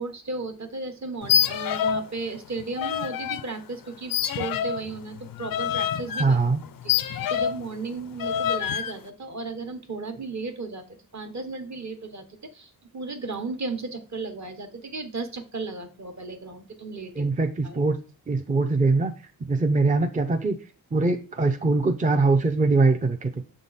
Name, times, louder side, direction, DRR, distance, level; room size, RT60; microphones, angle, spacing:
voice 1, 0.0-6.4 6.8-10.8 11.1-12.2 12.5-17.3 17.6-17.8, right 3 dB, 50° right, 7 dB, 1.2 m, -35 dB
sound 1, 1.2-2.1 2.4-3.4 4.1-7.7 8.2-8.9, left 9 dB, 65° left, 0.5 m, -26 dB
voice 2, 6.2-6.6 17.2-18.0 18.3-19.1 19.5-20.6 20.9-23.3, right 3 dB, 20° right, 5 dB, 0.5 m, -22 dB
6.9 x 3.8 x 4.0 m, 0.36 s
wide cardioid pair, 85°, 36 cm